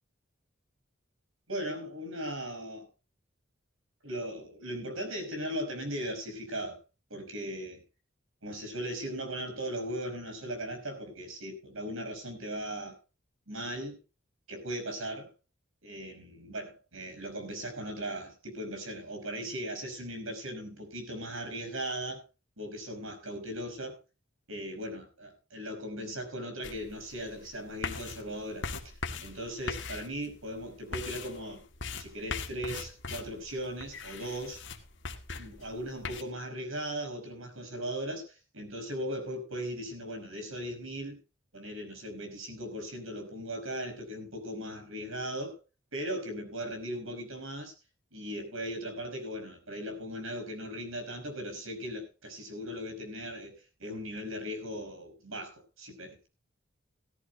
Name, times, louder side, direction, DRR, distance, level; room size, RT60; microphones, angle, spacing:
voice 1, 1.5-2.9 4.0-6.8 7.1-7.8 8.4-13.0 13.5-14.0 14.5-15.3 15.8-22.2 22.6-24.0 24.5-28.9 29.2-31.6 32.0-34.6 35.4-41.2 41.5-45.6 45.9-47.7 48.1-56.3, equal, 85° right, 6 dB, 5.3 m, -38 dB
sound 1, 26.6-36.2, left 4 dB, 60° left, 1.8 m, -41 dB
18.0 x 14.0 x 2.2 m, 0.30 s
head